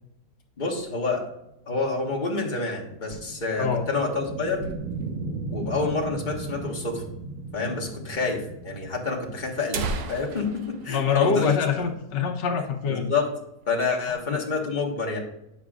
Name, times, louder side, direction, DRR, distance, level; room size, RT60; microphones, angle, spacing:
voice 1, 0.6-1.2 1.7-4.6 5.5-7.0 7.5-9.8 10.1-11.5 12.8-13.3 13.7-15.2, left 4 dB, 30° left, -1 dB, 1.3 m, -28 dB
Slow Flyby Landing, 1.5-12.2, right 3 dB, 55° right, 1.5 m, -37 dB
screen door slam, 3.5-5.4 5.7-5.8 6.0-6.1 6.8-6.9 7.8-7.9 8.2-8.3 9.1-9.2 9.5-12.1 12.4-12.6 13.0-13.2 13.6-14.2, right 4 dB, 90° right, 1.4 m, -36 dB
voice 2, 10.9-13.1 14.1-14.4, left 6 dB, 80° left, 2 dB, 1.5 m, -25 dB
9.2 x 7.0 x 2.4 m, 0.85 s
omnidirectional pair, 1.9 m